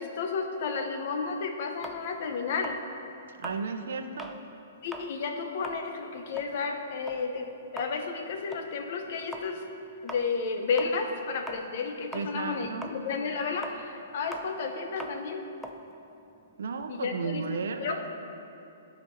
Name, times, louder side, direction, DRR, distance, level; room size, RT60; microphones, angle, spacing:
voice 1, 0.0-2.8 4.8-9.7 10.0-15.4 16.9-18.1, left 5 dB, 40° left, 5 dB, 0.7 m, -32 dB
sound 1, 1.8-4.4 4.8-5.1 5.5-11.9 12.1-16.9, equal, ahead, 0.3 m, -43 dB
voice 2, 3.3-4.4 12.1-12.9 16.6-18.0, right 5 dB, 80° right, 7 dB, 0.7 m, -34 dB
10.5 x 5.1 x 5.8 m, 2.8 s
hypercardioid pair, 175°, 0 cm